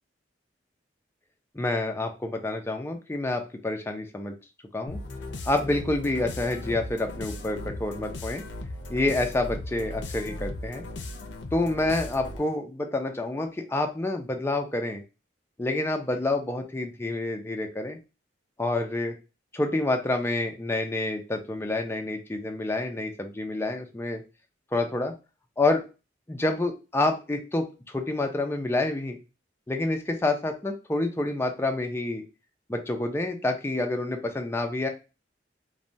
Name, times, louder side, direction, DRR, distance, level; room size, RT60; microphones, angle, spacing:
voice 1, 1.5-4.3 4.7-5.0 5.5-8.4 8.9-10.8 11.5-15.0 15.6-18.0 18.6-19.1 19.5-24.2 24.7-25.1 25.6-25.8 26.3-29.2 29.7-32.2 32.7-34.9, left 2 dB, 15° left, 4 dB, 0.4 m, -28 dB
sound 1, 4.9-12.6, left 1 dB, 70° left, 0.5 m, -37 dB
3.1 x 2.2 x 2.6 m, 0.30 s
head